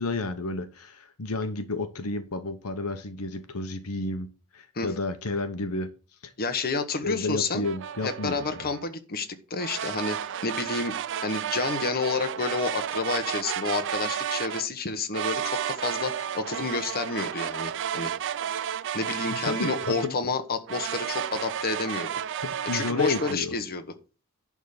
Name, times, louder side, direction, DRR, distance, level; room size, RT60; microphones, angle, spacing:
voice 1, 0.0-4.3 4.5-5.9 6.2-6.3 7.0-8.7 19.3-20.3 22.4-23.5, left 3 dB, 70° left, 9 dB, 1.0 m, -31 dB
voice 2, 6.4-7.7 8.0-11.0 11.2-18.1 18.9-22.1 22.7-23.8, left 4 dB, 45° left, 8 dB, 1.1 m, -30 dB
sound 1, 7.6-8.8 9.6-14.7 15.1-20.2 20.7-23.3, right 9 dB, 55° right, 0.4 m, -32 dB
11.0 x 3.7 x 6.6 m, 0.35 s
head